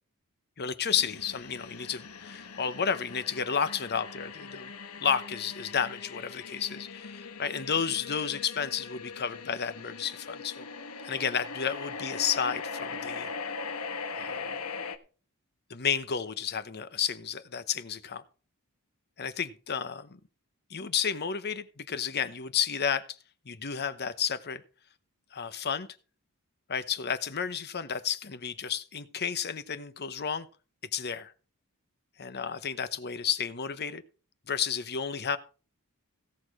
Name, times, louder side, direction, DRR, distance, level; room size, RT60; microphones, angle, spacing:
voice 1, 0.6-4.7 5.0-10.7 11.0-13.3 14.1-14.5 15.7-18.2 19.2-20.2 20.7-23.2 23.5-24.6 25.3-25.9 26.7-30.5 30.9-31.3 32.2-34.0 34.5-35.4, left 7 dB, 50° left, 12 dB, 0.9 m, -32 dB
sound 1, 0.9-15.0, left 5 dB, 85° left, 1.2 m, -40 dB
16.5 x 6.4 x 4.9 m, 0.36 s
head